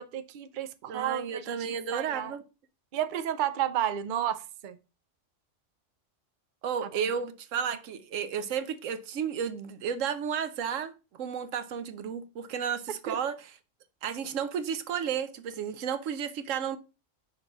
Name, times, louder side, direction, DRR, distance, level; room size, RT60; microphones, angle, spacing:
voice 1, 0.0-2.3 2.9-4.8 6.8-7.1 13.1-13.2, right 10 dB, 50° right, 0.6 m, -32 dB
voice 2, 0.8-2.4 6.6-13.5 14.0-16.8, right 7 dB, 85° right, 1.1 m, -33 dB
6.0 x 3.2 x 5.8 m
omnidirectional pair, 1.3 m